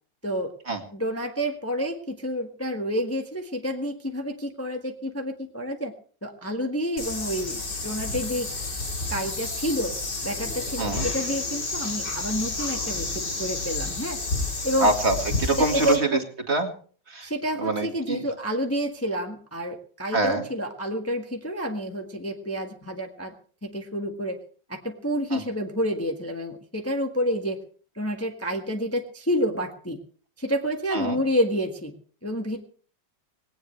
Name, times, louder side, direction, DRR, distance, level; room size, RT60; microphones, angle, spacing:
voice 1, 0.2-0.5 0.9-5.9 6.2-8.5 9.1-10.0 10.2-14.2 14.6-14.9 15.5-16.2 17.2-23.3 23.6-24.4 24.7-27.6 27.9-30.0 30.4-31.9 32.2-32.6, equal, 10° left, 3 dB, 1.4 m, -29 dB
sound 1, 7.0-16.0, left 3 dB, 65° left, 4.2 m, -30 dB
voice 2, 14.8-16.1 16.5-16.7 17.1-17.3 17.6-18.3 20.1-20.4 25.3-25.4 30.9-31.2, right 2 dB, 35° right, 4 dB, 2.2 m, -25 dB
19.0 x 18.0 x 3.3 m, 0.44 s
omnidirectional pair, 2.0 m